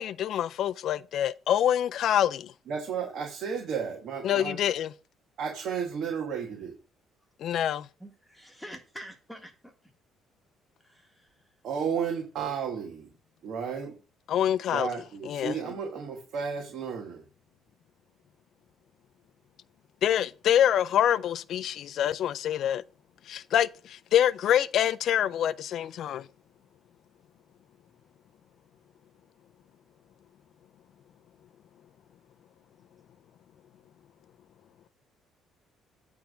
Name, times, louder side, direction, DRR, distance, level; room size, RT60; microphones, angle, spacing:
voice 1, 0.0-2.5 4.2-4.9 7.4-7.9 14.3-14.9 15.3-15.6 20.0-22.8 23.3-26.3, left 10 dB, 60° left, 0.3 m, -26 dB
voice 2, 2.7-4.6 5.4-6.7 11.6-13.1 13.4-14.0 14.7-17.2, right 6 dB, 60° right, 1.5 m, -33 dB
voice 3, 8.0-9.7 10.8-11.5, equal, 5° left, 1.5 m, -46 dB
8.7 x 3.5 x 6.1 m
cardioid pair, 130°, 0 cm